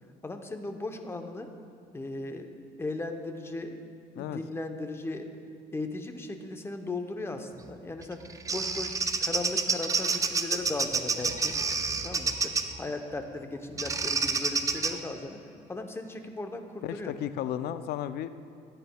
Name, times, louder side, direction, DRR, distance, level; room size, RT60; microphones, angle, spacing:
voice 1, 0.2-1.5 1.9-2.5 2.8-3.8 4.1-5.3 5.7-11.6 12.0-15.4 15.7-17.1, left 2 dB, 15° left, 6 dB, 0.7 m, -37 dB
Bird vocalization bird call bird song, 8.0-12.8 13.8-14.9, right 4 dB, 20° right, 0.5 m, -29 dB
voice 2, 16.8-18.3, left 11 dB, 70° left, 13 dB, 0.4 m, -33 dB
13.5 x 9.1 x 2.2 m, 2.7 s
cardioid pair, 110°, 17 cm